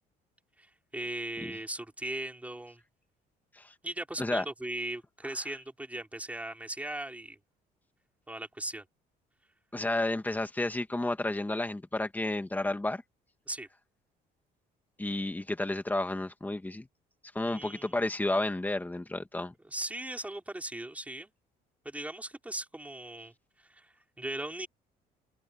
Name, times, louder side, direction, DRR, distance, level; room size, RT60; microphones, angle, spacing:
voice 1, 0.9-2.8 3.8-7.4 8.3-8.8 13.5-13.7 17.4-17.9 19.6-21.3 21.9-23.3 23.7-24.7, right 1 dB, 10° right, 5.4 m, -38 dB
voice 2, 9.7-13.0 15.0-16.9 17.3-19.5, left 2 dB, 10° left, 2.2 m, -31 dB
cardioid pair, 110°, 17 cm